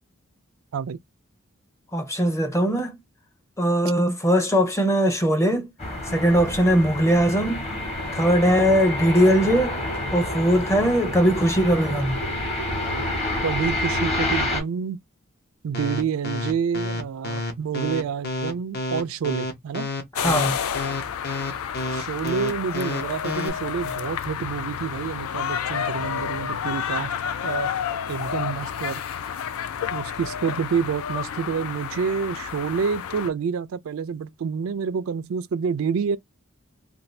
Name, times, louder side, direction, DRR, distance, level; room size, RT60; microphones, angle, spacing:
voice 1, 1.9-3.0 3.6-5.7 6.1-7.8 8.1-9.8 10.1-12.2 20.2-20.6, equal, 15° left, 0.6 m, -20 dB
sound 1, 5.8-14.6, left 1 dB, 30° left, 1.1 m, -28 dB
voice 2, 13.4-15.0 15.6-19.9 21.9-27.1 27.4-27.7 28.1-29.0 29.9-36.2, right 6 dB, 75° right, 0.4 m, -28 dB
sound 2, 15.7-23.5, left 2 dB, 50° left, 0.8 m, -29 dB
sound 3, 20.2-33.3, left 8 dB, 85° left, 0.4 m, -30 dB
2.6 x 2.5 x 3.1 m
head